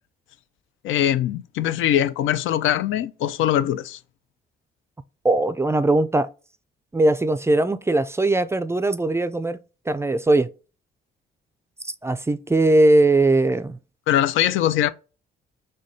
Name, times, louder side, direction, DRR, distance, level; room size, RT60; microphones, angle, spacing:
voice 1, 0.8-4.0 14.1-14.9, left 11 dB, 80° left, 0.4 m, -22 dB
voice 2, 5.2-6.3 6.9-9.6 9.9-10.5 12.0-13.8, right 2 dB, 15° right, 0.3 m, -20 dB
6.3 x 2.2 x 2.7 m
cardioid pair, 90°, 20 cm